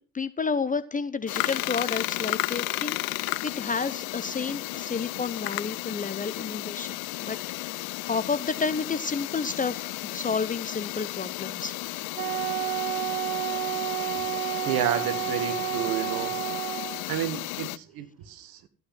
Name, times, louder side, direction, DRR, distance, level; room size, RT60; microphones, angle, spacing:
voice 1, 0.0-7.4 7.7-11.7, left 5 dB, 20° left, 13 dB, 0.8 m, -31 dB
sound 1, 1.3-17.8, left 21 dB, 55° left, 0.6 m, -33 dB
Wind instrument woodwind instrument, 12.2-17.1, right 15 dB, 75° right, 1.6 m, -30 dB
voice 2, 14.6-16.3 17.1-18.7, right 10 dB, 55° right, 10 dB, 2.0 m, -30 dB
14.0 x 9.4 x 5.8 m, 0.37 s
figure-of-eight pair, 60°, 43 cm